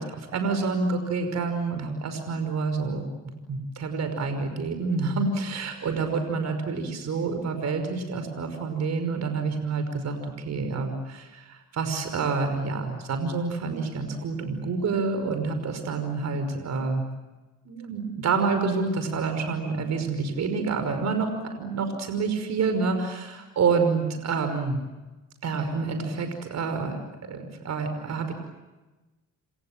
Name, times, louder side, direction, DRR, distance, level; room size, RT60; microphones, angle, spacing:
voice 1, 0.0-3.1 3.5-17.0 17.7-24.8 25.4-27.0 27.3-28.3, right 4 dB, 60° right, 7 dB, 5.5 m, -28 dB
29.0 x 27.0 x 7.5 m, 1.1 s
cardioid pair, 90°, 30 cm